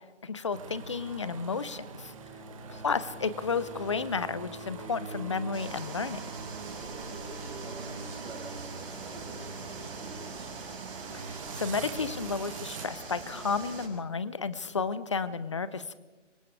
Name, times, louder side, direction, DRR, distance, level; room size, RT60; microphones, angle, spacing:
voice 1, 0.2-2.1 2.8-6.2 11.1-15.9, left 5 dB, 25° left, 15 dB, 0.6 m, -32 dB
sound 1, 0.5-12.9, right 4 dB, 25° right, 1.7 m, -43 dB
voice 2, 2.4-2.9 6.6-11.0, right 2 dB, 5° right, -3 dB, 5.3 m, -49 dB
sound 2, 5.5-13.9, right 4 dB, 45° right, 6.5 m, -43 dB
26.5 x 25.0 x 4.8 m, 1.2 s
figure-of-eight pair, 150°, 37 cm